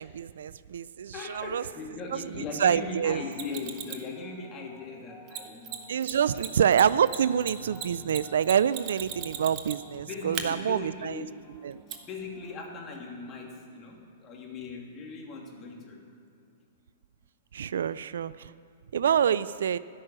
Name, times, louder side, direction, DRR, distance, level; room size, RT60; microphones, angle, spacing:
voice 1, 0.0-1.6 2.1-3.2 5.9-11.2 11.6-11.8 17.5-18.5 18.9-19.8, right 8 dB, 75° right, 18 dB, 0.3 m, -26 dB
voice 2, 1.1-5.8 6.1-6.5 10.0-11.3 12.0-16.1 19.1-19.5, left 3 dB, 30° left, -1 dB, 2.8 m, -39 dB
sound 1, 3.3-12.8, right 1 dB, ahead, 1.6 m, -54 dB
Mechanisms, 3.3-4.1 5.3-5.4 5.6-5.8 6.0-6.1 6.4-9.9 10.3-10.4 11.9-12.0, right 10 dB, 35° right, 1.2 m, -36 dB
13.0 x 6.3 x 9.9 m, 2.3 s
hypercardioid pair, 115°, 0 cm